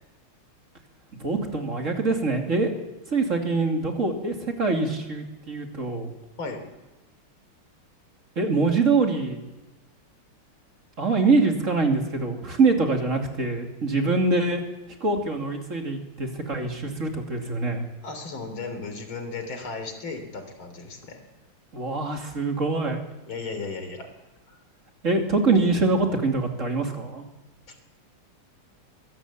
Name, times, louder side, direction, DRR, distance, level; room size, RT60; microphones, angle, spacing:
voice 1, 1.2-2.7 3.1-6.1 8.4-9.4 11.0-14.6 15.0-17.8 21.7-23.0 25.0-27.2, right 3 dB, 35° right, 3 dB, 2.8 m, -24 dB
voice 2, 18.0-21.2 23.3-24.1 24.5-24.6 27.7-27.8, left 4 dB, 65° left, 6 dB, 4.2 m, -35 dB
23.5 x 17.0 x 8.5 m, 1.1 s
omnidirectional pair, 2.4 m